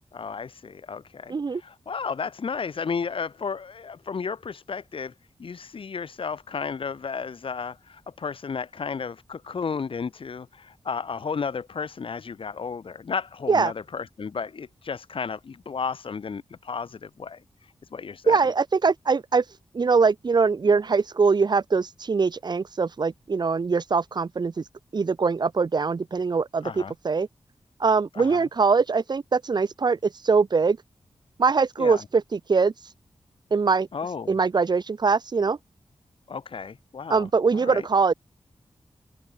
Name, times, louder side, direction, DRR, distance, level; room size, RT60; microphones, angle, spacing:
voice 1, 0.1-5.1 5.4-18.4 26.6-26.9 28.1-28.5 31.8-32.0 33.9-34.4 36.3-37.3 37.5-37.9, left 5 dB, 65° left, 7.1 m, -33 dB
voice 2, 1.3-1.6 13.5-13.7 18.3-19.4 19.7-24.5 24.9-27.3 27.8-30.8 31.4-32.7 33.5-33.9 34.3-35.6 37.1-38.1, right 4 dB, 45° right, 1.7 m, -22 dB
open air
wide cardioid pair, 135°, 10 cm